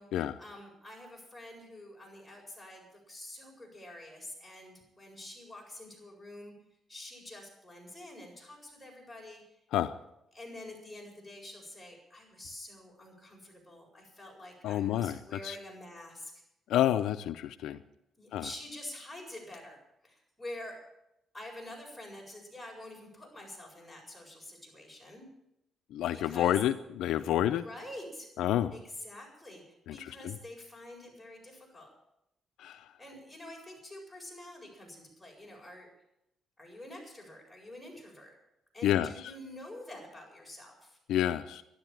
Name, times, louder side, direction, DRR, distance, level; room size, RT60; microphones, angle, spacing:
voice 1, 0.0-6.5 6.9-9.4 10.3-16.3 18.2-20.8 21.3-25.3 26.1-26.6 27.4-28.3 28.7-31.9 33.0-35.9 36.6-38.4 38.7-41.0, left 1 dB, 5° left, -1 dB, 7.8 m, -47 dB
voice 2, 14.6-15.2 15.4-15.6 16.7-17.8 18.3-18.4 25.9-27.6 28.4-28.7 29.9-30.3 32.6-32.9 38.8-39.1 41.1-41.6, left 12 dB, 85° left, 10 dB, 0.6 m, -29 dB
12.5 x 12.0 x 9.0 m, 0.83 s
cardioid pair, 90°, 0 cm